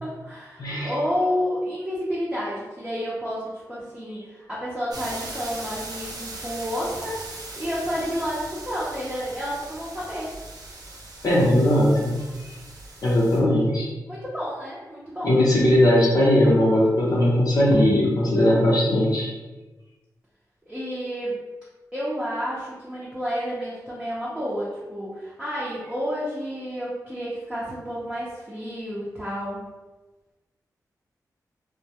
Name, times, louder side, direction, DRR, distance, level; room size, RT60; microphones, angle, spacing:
voice 1, 0.0-7.3 7.6-10.3 14.1-15.4 20.6-21.4 21.9-29.7, equal, 10° right, -8 dB, 0.6 m, -30 dB
voice 2, 0.6-0.9 11.2-12.5 13.0-13.9 15.2-19.3, left 1 dB, 65° left, -5 dB, 0.7 m, -19 dB
sound 1, 4.9-13.4, right 2 dB, 70° right, 0.5 m, -39 dB
2.2 x 2.2 x 2.7 m, 1.2 s
cardioid pair, 75°, 7 cm